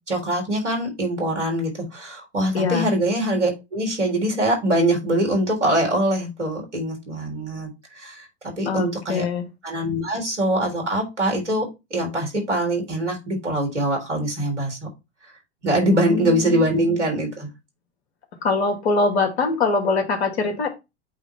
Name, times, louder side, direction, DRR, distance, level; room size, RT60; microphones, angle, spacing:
voice 1, 0.1-8.3 8.6-9.3 9.6-14.8 15.6-17.5, right 1 dB, 85° right, 1 dB, 3.7 m, -23 dB
voice 2, 2.5-2.9 8.7-9.4 15.9-16.7 18.4-20.7, left 3 dB, 65° left, 5 dB, 2.3 m, -23 dB
8.4 x 3.2 x 4.5 m, 0.24 s
hypercardioid pair, 90°, 34 cm